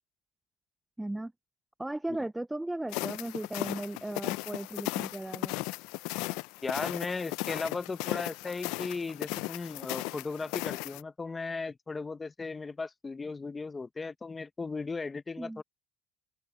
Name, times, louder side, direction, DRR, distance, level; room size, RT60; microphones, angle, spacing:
voice 1, 1.0-1.3 1.8-5.6 15.4-15.6, right 1 dB, 5° right, 0.3 m, -36 dB
sound 1, 2.9-11.0, left 22 dB, 80° left, 0.4 m, -36 dB
voice 2, 6.6-15.6, left 4 dB, 15° left, 0.7 m, -36 dB
open air
cardioid pair, 140°, 0 cm